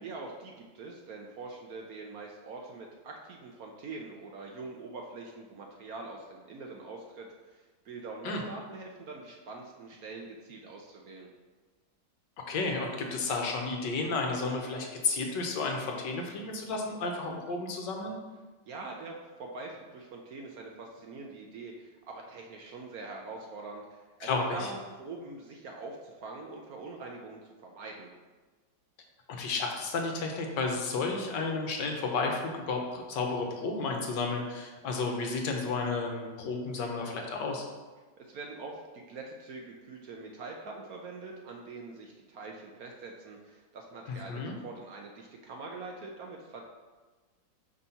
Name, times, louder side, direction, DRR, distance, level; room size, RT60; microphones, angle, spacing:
voice 1, 0.0-11.3 18.7-28.1 38.2-46.6, right 3 dB, 65° right, 0 dB, 1.0 m, -44 dB
voice 2, 12.5-18.2 24.2-24.6 29.3-37.6 44.1-44.5, left 3 dB, 75° left, 2 dB, 1.5 m, -32 dB
5.4 x 4.1 x 5.6 m, 1.3 s
omnidirectional pair, 2.0 m